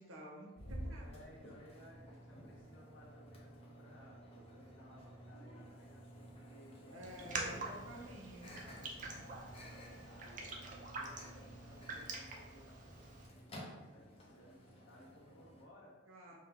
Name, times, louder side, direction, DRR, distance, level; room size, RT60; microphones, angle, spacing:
voice 1, 0.0-1.1 6.8-8.6 16.1-16.4, equal, 85° right, 0 dB, 0.8 m, -52 dB
Microwave oven, 0.6-15.6, equal, 30° left, 0.6 m, -52 dB
voice 2, 1.0-4.2 4.5-8.0 8.6-16.0 16.3-16.4, equal, 75° left, -4 dB, 1.1 m, -60 dB
Raindrop, 7.0-13.3, right 3 dB, 40° right, 0.5 m, -46 dB
4.9 x 2.1 x 3.5 m, 1.1 s
head